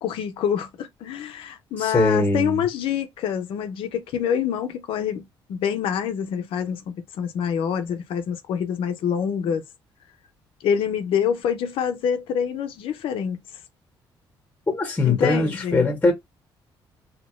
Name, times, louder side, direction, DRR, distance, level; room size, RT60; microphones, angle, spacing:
voice 1, 0.0-9.6 10.6-13.4 15.0-15.9, left 8 dB, 80° left, 0.6 m, -26 dB
voice 2, 1.8-2.6 14.7-16.1, left 3 dB, 15° left, 1.1 m, -21 dB
2.9 x 2.1 x 2.9 m
cardioid pair, 115°, 9 cm